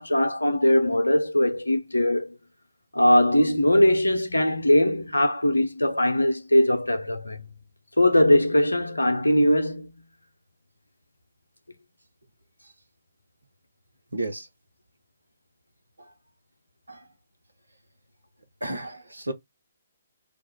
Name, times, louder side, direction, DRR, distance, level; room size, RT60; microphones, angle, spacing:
voice 1, 0.0-2.3 2.9-7.5 8.0-9.9, left 1 dB, 80° left, 0.6 m, -21 dB
voice 2, 14.1-14.5 16.9-17.1 18.6-19.3, right 1 dB, 80° right, 0.9 m, -32 dB
3.5 x 2.3 x 4.5 m
figure-of-eight pair, 130°, 0 cm